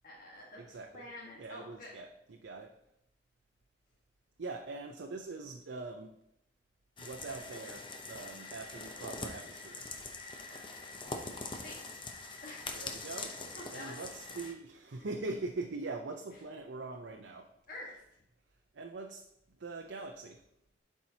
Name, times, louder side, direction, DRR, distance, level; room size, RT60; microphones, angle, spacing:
voice 1, 0.0-1.9 10.5-10.6 11.5-11.9 12.4-12.8 13.7-14.0 17.7-18.0, left 2 dB, 50° left, -3 dB, 1.5 m, -48 dB
voice 2, 0.6-1.0 1.4-2.7 4.4-6.1 7.0-9.9 12.8-13.4 13.7-17.5 18.7-19.2 19.6-20.4, right 3 dB, 90° right, 2 dB, 0.6 m, -42 dB
sound 1, 7.0-14.5, left 3 dB, 30° left, 0.7 m, -43 dB
11.5 x 4.6 x 2.8 m, 0.81 s
head